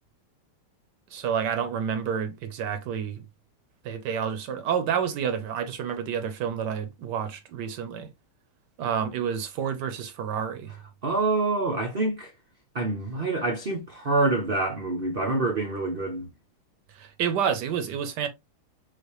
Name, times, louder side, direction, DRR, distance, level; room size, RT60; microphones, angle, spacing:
voice 1, 1.1-3.2 3.8-8.1 8.8-10.7 16.9-18.3, right 7 dB, 70° right, 1.1 m, -29 dB
voice 2, 11.0-12.3 12.7-16.2, right 3 dB, 85° right, 0.5 m, -26 dB
6.2 x 2.5 x 3.0 m
omnidirectional pair, 2.3 m